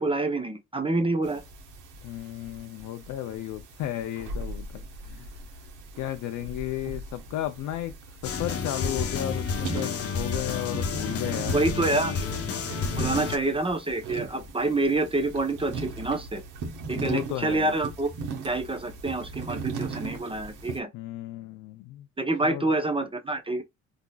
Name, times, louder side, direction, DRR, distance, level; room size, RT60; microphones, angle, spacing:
voice 1, 0.0-1.4 11.5-12.3 13.0-16.4 16.9-18.1 18.4-20.9 22.2-23.6, right 2 dB, 20° right, 0.7 m, -27 dB
sound 1, 1.2-20.8, right 4 dB, 80° right, 1.2 m, -38 dB
voice 2, 2.0-5.6 5.9-11.6 12.8-13.3 16.9-17.7 20.9-22.1 22.4-22.6, left 13 dB, 85° left, 0.5 m, -34 dB
sound 2, 8.2-13.4, left 5 dB, 50° left, 0.8 m, -30 dB
3.8 x 2.8 x 2.3 m
cardioid pair, 90°, 30 cm